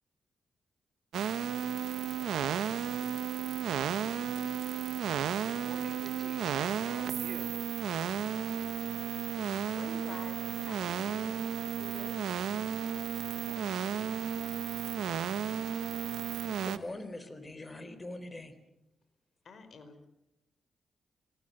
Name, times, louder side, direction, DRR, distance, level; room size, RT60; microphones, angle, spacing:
sound 1, 1.1-16.8, right 9 dB, 90° right, 1.1 m, -33 dB
voice 1, 5.4-7.5, right 4 dB, 45° right, 10 dB, 3.4 m, -48 dB
voice 2, 9.7-12.1 13.3-14.1 19.4-20.1, left 4 dB, 60° left, 9 dB, 4.5 m, -49 dB
voice 3, 16.6-18.5, left 2 dB, 20° left, 12 dB, 3.6 m, -42 dB
25.0 x 18.0 x 7.9 m, 0.88 s
cardioid pair, 80°, 0 cm